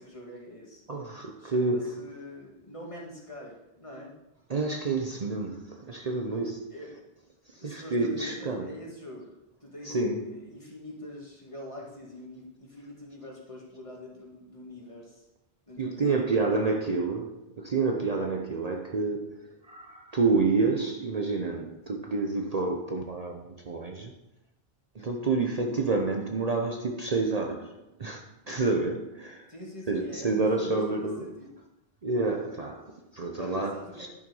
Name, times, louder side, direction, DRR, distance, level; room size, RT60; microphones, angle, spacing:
voice 1, 0.0-0.8 1.4-4.1 6.7-6.9 7.6-15.2 15.7-16.2 29.5-31.5 33.4-34.1, left 1 dB, 30° left, 2.3 m, -44 dB
voice 2, 0.9-2.1 4.5-6.8 7.5-8.7 9.8-10.4 15.8-24.1 24.9-29.5 29.9-31.2 32.0-34.1, right 3 dB, 40° right, 0.8 m, -29 dB
11.0 x 5.8 x 5.4 m
omnidirectional pair, 1.0 m